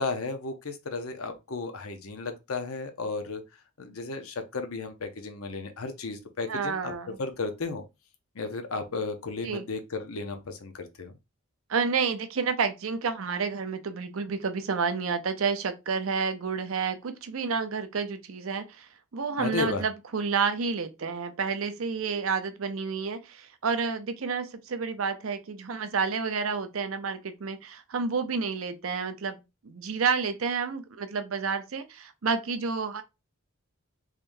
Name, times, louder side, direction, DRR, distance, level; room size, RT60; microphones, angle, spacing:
voice 1, 0.0-3.4 3.8-6.9 7.2-7.8 8.3-11.2 19.4-19.9, left 3 dB, 75° left, 0.7 m, -34 dB
voice 2, 6.5-7.2 9.4-9.6 11.7-33.0, right 5 dB, 65° right, 0.6 m, -30 dB
3.6 x 3.3 x 2.6 m
head